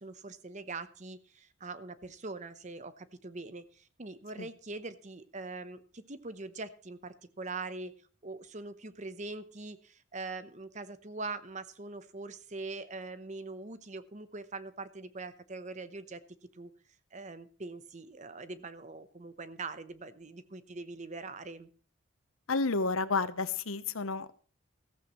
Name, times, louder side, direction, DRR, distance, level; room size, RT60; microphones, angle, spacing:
voice 1, 0.0-7.9 8.2-16.2 16.5-16.7 17.1-21.7, right 3 dB, 35° right, 13 dB, 0.8 m, -42 dB
voice 2, 22.5-24.3, left 3 dB, 85° left, 14 dB, 0.9 m, -31 dB
14.5 x 14.5 x 3.1 m, 0.41 s
head